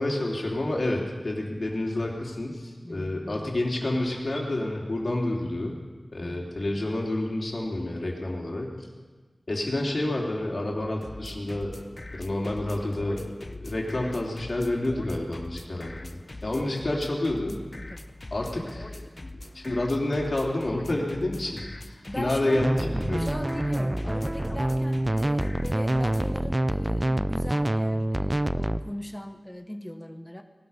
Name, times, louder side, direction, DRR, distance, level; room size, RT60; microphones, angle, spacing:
voice 1, 0.0-5.8 6.1-8.8 9.5-11.8 12.1-13.2 13.6-16.1 16.4-17.6 18.3-19.0 19.5-23.3, left 1 dB, 60° left, -1 dB, 3.2 m, -29 dB
voice 2, 2.8-3.6 6.2-6.9 17.9-18.1 22.1-22.7 23.2-30.4, equal, 10° left, 6 dB, 1.1 m, -39 dB
sound 1, 11.0-26.4, left 2 dB, 45° left, 0.8 m, -41 dB
sound 2, 22.6-28.8, right 1 dB, 25° right, 0.4 m, -26 dB
18.5 x 12.5 x 5.6 m, 1.3 s
wide cardioid pair, 65°, 0 cm